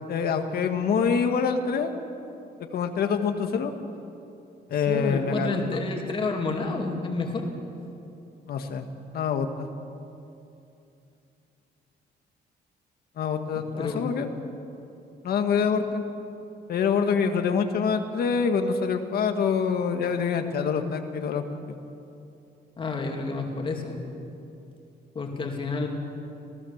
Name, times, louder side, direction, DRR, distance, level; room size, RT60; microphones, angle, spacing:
voice 1, 0.1-1.9 2.7-3.7 4.7-5.8 8.5-8.8 9.1-9.5 13.2-14.3 15.2-16.0 16.7-21.8, left 6 dB, 60° left, 6 dB, 1.7 m, -25 dB
voice 2, 4.9-7.5 13.6-14.1 15.8-15.9 22.8-24.0 25.1-25.9, left 3 dB, 30° left, 2 dB, 2.7 m, -30 dB
27.0 x 17.5 x 7.3 m, 2.7 s
cardioid pair, 180°, 18 cm